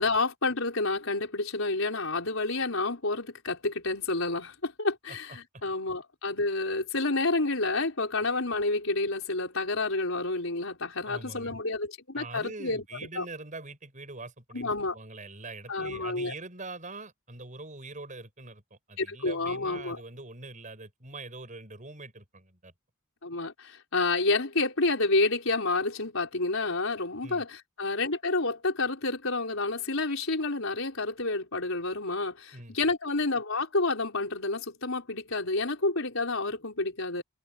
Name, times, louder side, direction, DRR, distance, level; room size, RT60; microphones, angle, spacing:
voice 1, 0.0-12.8 13.2-13.3 14.5-15.0 15.7-16.3 19.0-20.0 23.2-37.2, left 3 dB, 70° left, 5.3 m, -29 dB
voice 2, 11.0-11.5 12.1-22.7 27.2-27.4 32.5-32.8, right 3 dB, 35° right, 6.8 m, -43 dB
head